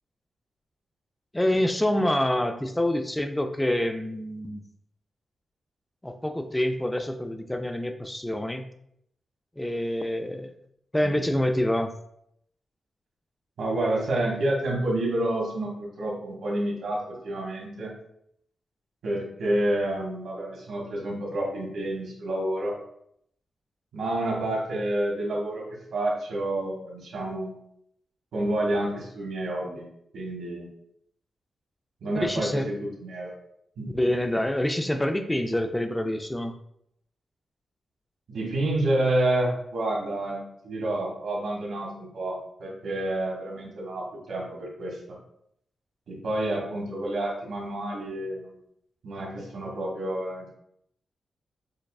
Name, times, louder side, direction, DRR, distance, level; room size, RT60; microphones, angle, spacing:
voice 1, 1.3-4.6 6.0-8.6 9.6-10.5 10.9-11.9 32.1-32.7 33.9-36.5, left 1 dB, 10° left, 6 dB, 0.3 m, -26 dB
voice 2, 13.6-17.9 19.0-22.8 23.9-25.6 25.9-27.6 28.3-29.9 30.1-30.7 32.0-33.3 33.8-33.9 38.3-45.0 46.1-48.5 49.0-50.5, right 1 dB, 80° right, -3 dB, 1.4 m, -29 dB
6.5 x 2.3 x 2.3 m, 0.72 s
wide cardioid pair, 165°, 0 cm